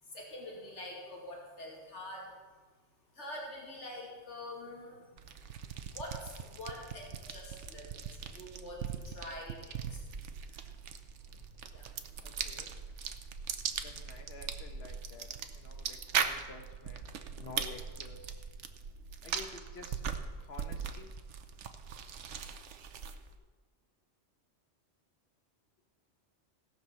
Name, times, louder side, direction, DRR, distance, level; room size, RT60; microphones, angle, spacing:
voice 1, 0.1-2.3 3.1-5.1 5.9-10.0 10.5-10.7 11.3-11.5 11.7-11.9, left 1 dB, 75° left, -2 dB, 2.8 m, -46 dB
sound 1, 5.2-23.4, right 7 dB, 80° right, 1.1 m, -40 dB
voice 2, 12.2-12.8 13.8-18.4 19.2-20.0 20.4-21.1, left 3 dB, 60° left, 5 dB, 1.5 m, -51 dB
17.0 x 5.9 x 7.0 m, 1.4 s
omnidirectional pair, 1.2 m